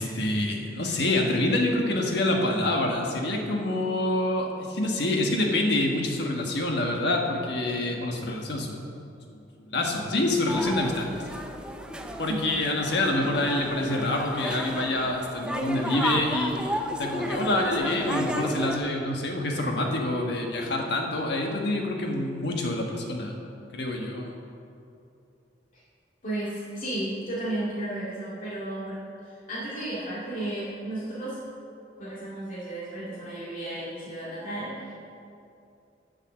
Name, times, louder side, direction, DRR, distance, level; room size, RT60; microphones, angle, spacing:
voice 1, 0.0-8.8 9.3-9.4 9.7-11.1 12.2-23.4 23.7-24.3, left 1 dB, 65° left, 1 dB, 1.4 m, -26 dB
sound 1, 10.5-18.8, equal, 5° right, 0.5 m, -33 dB
voice 2, 12.2-12.7 26.2-31.4 32.0-34.9, right 1 dB, 50° left, -9 dB, 2.2 m, -34 dB
10.0 x 5.6 x 7.3 m, 2.6 s
head